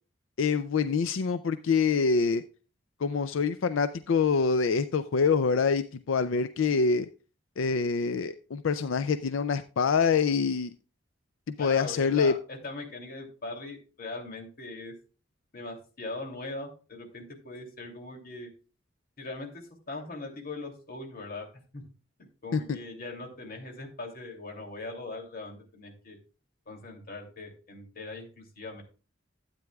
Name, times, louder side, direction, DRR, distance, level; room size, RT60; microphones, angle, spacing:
voice 1, 0.4-2.4 3.0-7.1 7.6-10.7 11.5-12.3 22.5-22.8, left 5 dB, 85° left, 12 dB, 0.4 m, -25 dB
voice 2, 11.6-14.9 15.5-18.5 19.2-21.8 22.2-26.2 26.7-28.8, left 2 dB, 50° left, 1 dB, 2.8 m, -40 dB
12.5 x 9.0 x 2.3 m, 0.36 s
head